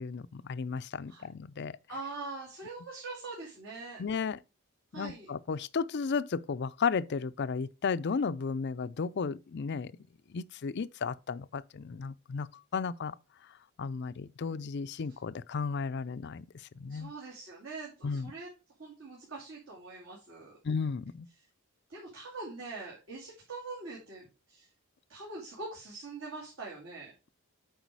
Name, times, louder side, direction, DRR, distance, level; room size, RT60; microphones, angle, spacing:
voice 1, 0.0-1.7 4.0-4.4 4.9-9.9 10.3-12.5 12.7-13.1 13.8-16.5 16.8-17.1 18.0-18.3 20.6-21.3, left 5 dB, 50° left, 0.4 m, -34 dB
voice 2, 1.9-4.0 4.9-5.3 15.1-15.2 16.9-18.5 18.8-20.6 21.9-24.7 25.1-27.1, right 3 dB, 60° right, 2.4 m, -43 dB
8.2 x 4.8 x 4.7 m
head